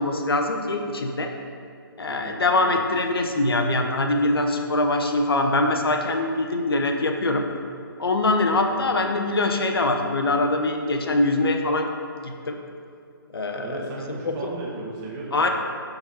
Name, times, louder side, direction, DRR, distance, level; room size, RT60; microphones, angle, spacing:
voice 1, 0.0-1.3 2.0-7.5 8.0-11.9 12.2-12.6 13.3-13.8 14.2-14.5 15.3-15.5, left 2 dB, 75° left, 4 dB, 0.9 m, -23 dB
voice 2, 2.1-2.8 8.7-8.9 13.6-15.5, right 3 dB, 25° right, -4 dB, 1.5 m, -36 dB
11.5 x 4.0 x 4.2 m, 2.3 s
figure-of-eight pair, 140°, 12 cm